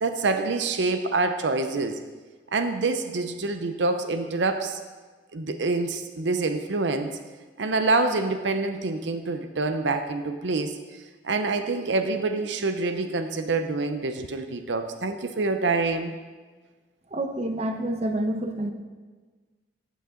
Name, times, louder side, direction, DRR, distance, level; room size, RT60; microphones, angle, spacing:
voice 1, 0.0-2.0 2.5-4.8 5.3-7.2 7.6-10.7 11.2-16.1, right 3 dB, 80° right, 8 dB, 0.7 m, -26 dB
voice 2, 17.1-18.7, right 1 dB, 35° right, 5 dB, 0.9 m, -28 dB
15.0 x 8.3 x 3.8 m, 1.4 s
head